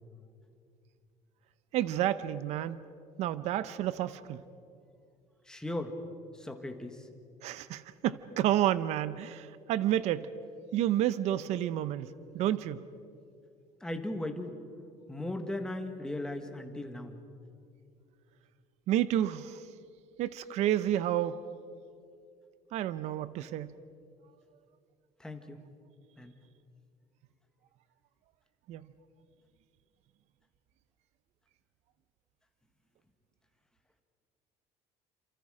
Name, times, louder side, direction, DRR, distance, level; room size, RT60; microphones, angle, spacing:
voice 1, 1.7-2.8 3.2-4.4 7.4-10.3 10.7-12.8 18.9-19.6 20.2-21.4 22.7-23.7 28.7-28.8, right 12 dB, 60° right, 14 dB, 0.8 m, -30 dB
voice 2, 5.5-5.9 6.4-7.0 13.8-14.5 15.1-17.2 25.2-25.6 26.2-26.3, left 1 dB, 5° left, 5 dB, 1.6 m, -37 dB
28.5 x 27.5 x 5.0 m, 2.4 s
cardioid pair, 165°, 13 cm